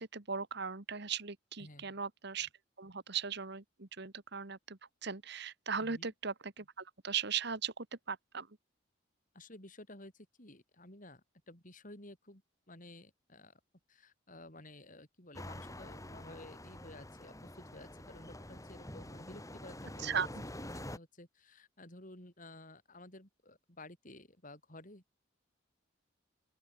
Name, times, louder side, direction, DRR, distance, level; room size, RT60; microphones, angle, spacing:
voice 1, 0.0-2.5 2.8-8.5 20.0-20.3, right 6 dB, 55° right, 1.6 m, -38 dB
voice 2, 1.6-1.9 5.8-6.1 9.3-12.4 12.7-13.6 13.9-25.2, left 1 dB, 40° left, 7.1 m, -54 dB
sound 1, 15.3-21.0, left 1 dB, 15° left, 5.2 m, -47 dB
open air
head